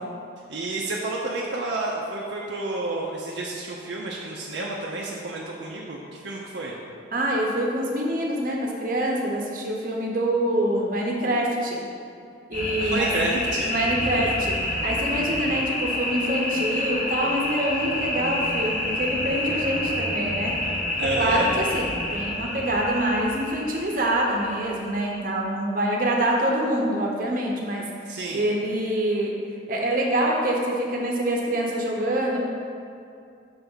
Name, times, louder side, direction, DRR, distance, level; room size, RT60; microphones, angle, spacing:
voice 1, 0.5-6.7 12.8-13.7 14.1-14.3 21.0-21.5 28.1-28.4, right 2 dB, 70° right, -3 dB, 0.6 m, -30 dB
voice 2, 7.1-11.8 12.5-13.3 13.7-20.5 21.1-29.4 29.7-32.4, right 1 dB, 50° right, -1 dB, 0.9 m, -25 dB
sound 1, 12.5-25.1, left 1 dB, 45° left, 1.1 m, -28 dB
5.9 x 3.4 x 5.5 m, 2.4 s
head